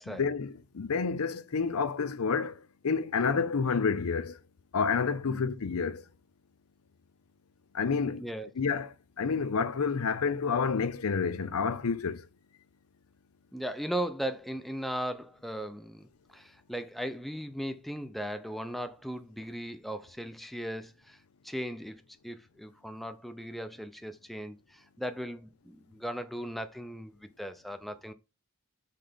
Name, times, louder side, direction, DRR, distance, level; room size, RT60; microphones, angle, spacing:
voice 1, 0.1-2.6 2.8-4.3 4.7-6.0 7.7-8.2 8.6-12.2, left 5 dB, 90° left, 0.6 m, -29 dB
voice 2, 13.5-28.1, equal, ahead, 0.5 m, -38 dB
5.8 x 3.3 x 5.1 m
head